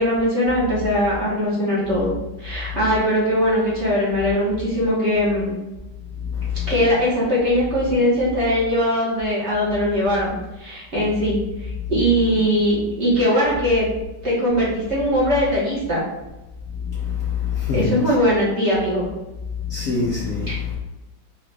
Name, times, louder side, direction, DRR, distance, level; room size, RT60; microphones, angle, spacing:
voice 1, 0.0-2.1 2.4-5.5 6.7-13.9 14.2-16.0 17.7-19.0 20.5-20.6, equal, 45° right, 1.0 m, -20 dB
voice 2, 6.2-6.7 16.8-18.1 19.6-20.7, left 5 dB, 75° left, 0.7 m, -25 dB
3.9 x 2.3 x 3.3 m
omnidirectional pair, 2.1 m